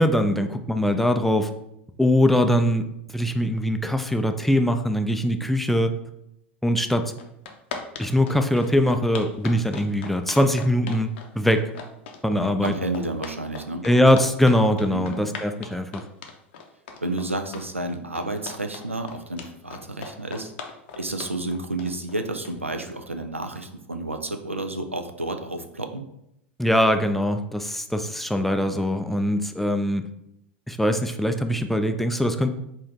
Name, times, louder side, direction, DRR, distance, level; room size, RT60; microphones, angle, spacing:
voice 1, 0.0-1.5 2.0-2.9 3.1-5.9 6.6-7.1 8.0-11.6 12.2-12.7 13.8-16.0 26.6-30.0 30.7-32.5, equal, 5° left, 6 dB, 0.3 m, -22 dB
sound 1, 6.8-6.9 7.2-22.8, left 5 dB, 60° left, 0.6 m, -39 dB
voice 2, 12.4-13.8 14.9-15.2 17.0-20.5 21.0-26.1, right 2 dB, 85° right, 6 dB, 0.4 m, -31 dB
4.4 x 2.6 x 3.4 m, 0.79 s
figure-of-eight pair, 85°, 7 cm